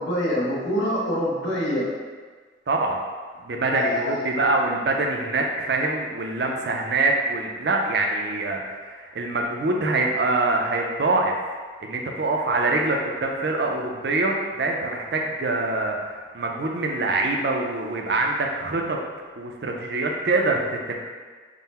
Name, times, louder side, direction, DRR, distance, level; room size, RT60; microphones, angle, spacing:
voice 1, 0.0-1.9 3.7-4.2, equal, 70° left, -5 dB, 0.9 m, -25 dB
voice 2, 2.7-3.0 3.4-11.3 11.8-19.0 19.4-21.0, right 2 dB, 60° right, 1 dB, 0.5 m, -24 dB
3.7 x 2.1 x 4.2 m, 1.5 s
head